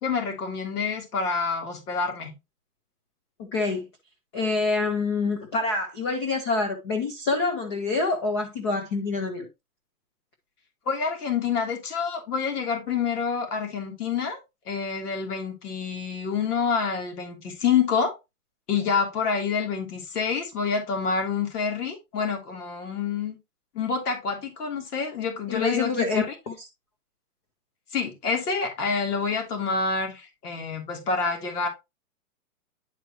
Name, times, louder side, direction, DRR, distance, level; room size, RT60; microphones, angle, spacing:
voice 1, 0.0-2.3 10.9-14.4 14.7-18.1 18.7-23.4 23.7-26.3 27.9-31.7, left 5 dB, 75° left, 3.1 m, -27 dB
voice 2, 3.4-3.9 4.3-9.5 25.5-26.7, left 3 dB, 20° left, 0.4 m, -26 dB
10.0 x 4.5 x 2.9 m
hypercardioid pair, 150°, 46 cm